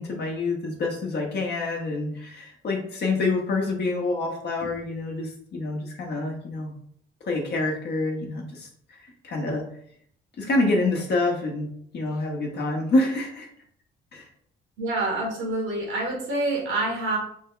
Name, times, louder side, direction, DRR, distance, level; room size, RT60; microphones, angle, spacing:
voice 1, 0.0-6.7 7.2-9.6 10.4-11.7 11.9-13.5 14.1-14.3, left 2 dB, 60° left, 0 dB, 0.9 m, -27 dB
voice 2, 14.8-17.2, right 2 dB, 85° right, -1 dB, 1.4 m, -27 dB
3.5 x 2.2 x 3.6 m, 0.64 s
cardioid pair, 90°, 20 cm